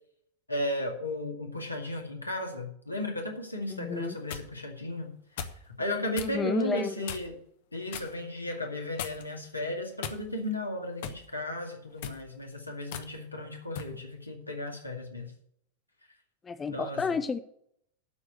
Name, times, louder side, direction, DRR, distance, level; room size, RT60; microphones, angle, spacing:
voice 1, 0.5-5.2 5.8-7.3 7.7-15.3 16.7-17.0, left 1 dB, 85° left, 1 dB, 2.2 m, -35 dB
voice 2, 3.7-4.2 6.2-7.1 16.4-17.4, left 5 dB, 20° left, 13 dB, 0.5 m, -31 dB
sound 1, 3.9-4.5 5.4-5.6 6.1-6.4 7.0-7.4 7.9-8.1 9.0-9.4 10.0-10.5 11.0-11.2 11.9-12.2 12.9-13.1 13.7-13.9, left 8 dB, 55° left, 1.0 m, -38 dB
12.0 x 4.8 x 8.1 m, 0.70 s
figure-of-eight pair, 90°, 0 cm